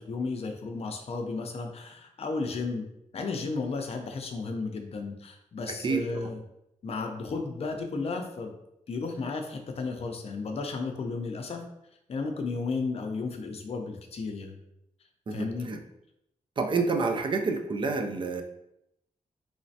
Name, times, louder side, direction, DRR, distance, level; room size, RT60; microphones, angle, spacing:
voice 1, 0.0-2.9 3.1-6.4 6.8-8.5 8.9-11.6 12.1-14.6 15.3-15.7, left 4 dB, 50° left, 4 dB, 0.5 m, -33 dB
voice 2, 5.7-6.3 15.3-15.8 16.6-18.4, right 4 dB, 35° right, 5 dB, 0.4 m, -29 dB
3.2 x 3.0 x 2.7 m, 0.81 s
wide cardioid pair, 155°, 14 cm